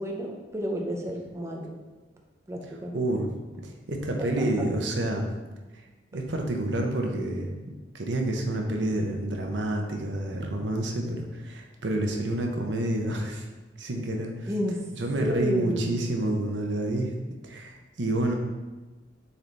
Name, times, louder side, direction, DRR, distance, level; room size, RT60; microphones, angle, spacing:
voice 1, 0.0-1.7 2.5-3.0 4.2-4.7 14.5-14.9 15.2-15.9, equal, 15° right, 0 dB, 0.6 m, -31 dB
voice 2, 2.9-3.3 3.6-5.3 6.1-7.5 7.9-13.5 13.8-14.5 15.0-17.1 17.4-18.4, right 1 dB, 85° right, 2 dB, 0.9 m, -28 dB
7.0 x 4.0 x 3.4 m, 1.2 s
head